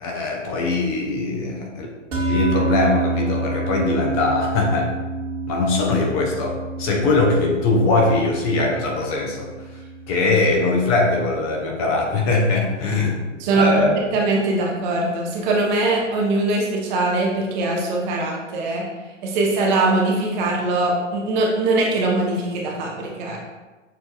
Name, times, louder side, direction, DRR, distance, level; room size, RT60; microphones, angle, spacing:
voice 1, 0.0-1.9 2.3-4.9 5.5-9.8 10.1-13.2 13.5-13.9, left 3 dB, 30° left, 0 dB, 0.6 m, -21 dB
sound 1, 2.1-12.6, right 3 dB, 75° right, 1.4 m, -29 dB
voice 2, 13.4-13.8 14.1-18.9 19.2-23.4, right 2 dB, 40° right, -2 dB, 0.8 m, -21 dB
6.6 x 2.6 x 2.3 m, 1.2 s
figure-of-eight pair, 115°, 37 cm